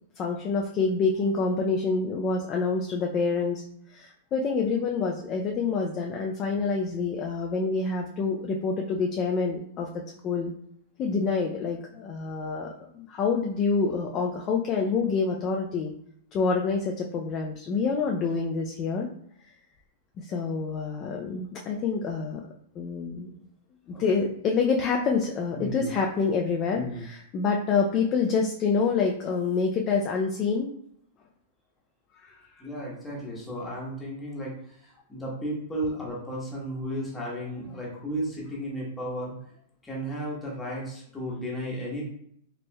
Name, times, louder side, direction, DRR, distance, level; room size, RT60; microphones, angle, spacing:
voice 1, 0.2-3.6 3.9-9.9 10.2-10.5 11.0-15.9 16.3-19.1 20.2-22.4 22.8-23.3 23.9-30.7 32.2-32.6, left 4 dB, 25° left, 0 dB, 0.4 m, -27 dB
voice 2, 25.5-25.9 26.7-27.1 32.6-39.3 39.8-42.1, equal, 10° left, -4 dB, 1.0 m, -34 dB
4.2 x 3.2 x 2.2 m, 0.68 s
supercardioid pair, 165°, 0 cm